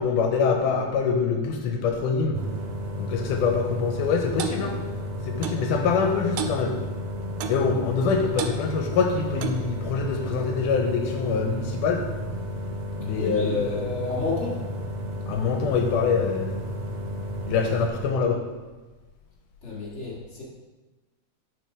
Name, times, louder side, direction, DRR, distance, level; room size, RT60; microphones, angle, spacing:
voice 1, 0.0-2.4 3.0-4.7 5.3-6.7 7.5-12.0 13.0-13.8 15.3-16.6 17.5-18.4, left 5 dB, 85° left, 2 dB, 2.1 m, -24 dB
sound 1, 2.3-17.9, equal, 70° right, 1.9 m, -33 dB
Clock, 4.4-4.6 5.4-5.6 6.4-6.6 7.4-7.6 8.4-8.6 9.4-9.7, right 7 dB, 90° right, 2.2 m, -31 dB
voice 2, 13.1-14.6 19.6-20.4, left 3 dB, 40° left, -5 dB, 1.0 m, -30 dB
6.2 x 4.4 x 4.7 m, 1.2 s
omnidirectional pair, 3.7 m